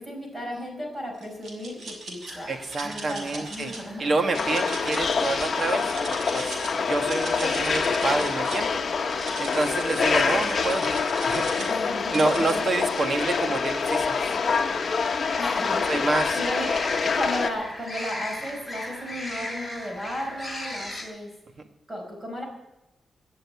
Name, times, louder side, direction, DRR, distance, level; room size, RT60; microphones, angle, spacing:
voice 1, 0.0-2.5 2.8-4.1 11.7-12.6 15.4-15.9 16.3-21.3 21.9-22.4, equal, 15° right, 1 dB, 4.7 m, -34 dB
sound 1, 1.2-2.3 2.7-3.8 4.3-6.7 7.0-8.7 9.1-11.7 12.1-12.5, right 2 dB, 65° right, 5.0 m, -39 dB
sound 2, 2.3-21.0, left 1 dB, ahead, 3.3 m, -41 dB
voice 2, 2.5-3.7 4.0-8.7 9.0-9.1 9.4-11.0 11.3-11.7 12.1-14.4 15.9-16.4, right 3 dB, 45° right, 6 dB, 1.4 m, -28 dB
sound 3, 4.3-17.5, left 5 dB, 45° left, 1.1 m, -26 dB
17.5 x 6.6 x 9.5 m, 0.96 s
wide cardioid pair, 150°, 0 cm